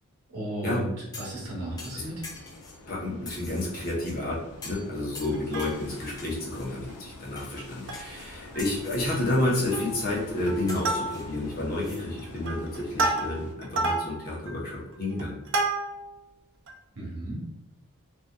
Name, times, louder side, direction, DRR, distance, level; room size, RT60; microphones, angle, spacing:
voice 1, 0.3-2.3 17.0-17.5, right 1 dB, 90° right, -4 dB, 0.9 m, -35 dB
sound 1, 1.1-1.4 1.8-2.8 3.2-4.1 4.6-4.9 5.1-5.8 6.2-6.7 7.3-7.5 7.9-8.3 8.6-9.1 9.6-10.1 10.7-12.0 12.3-12.4, left 3 dB, 15° left, 0.4 m, -44 dB
sound 2, 1.3-13.5, left 2 dB, 85° left, 0.4 m, -46 dB
voice 2, 2.9-4.4 4.6-15.4, left 2 dB, 40° left, -4 dB, 0.7 m, -30 dB
Plucked string instrument, 5.3-6.1 6.6-6.7 6.9-7.1 7.6-8.2 8.5-8.7 9.0-9.4 9.7-10.1 10.5-11.5 12.0-16.2 16.7-16.8, right 2 dB, 55° right, 0.4 m, -31 dB
2.5 x 2.3 x 2.2 m, 0.87 s
head